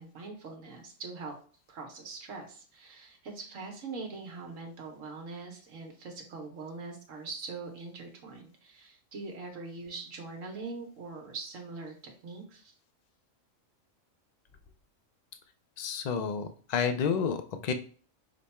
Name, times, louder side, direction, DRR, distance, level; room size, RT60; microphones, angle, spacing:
voice 1, 0.0-1.4 1.7-12.7, right 3 dB, 75° right, 2 dB, 1.3 m, -42 dB
voice 2, 15.8-17.7, left 6 dB, 75° left, 8 dB, 0.4 m, -30 dB
5.1 x 2.3 x 4.1 m, 0.43 s
omnidirectional pair, 1.4 m